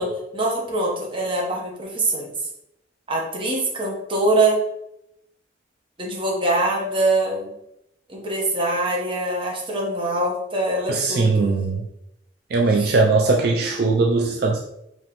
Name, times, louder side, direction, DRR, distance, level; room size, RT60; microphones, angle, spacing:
voice 1, 0.0-2.3 3.1-4.6 6.0-7.5 8.1-11.5 12.8-12.9, right 2 dB, 30° right, -1 dB, 1.0 m, -23 dB
voice 2, 10.9-11.8 12.5-14.6, right 3 dB, 60° right, 0 dB, 0.4 m, -20 dB
4.9 x 3.0 x 3.0 m, 0.81 s
head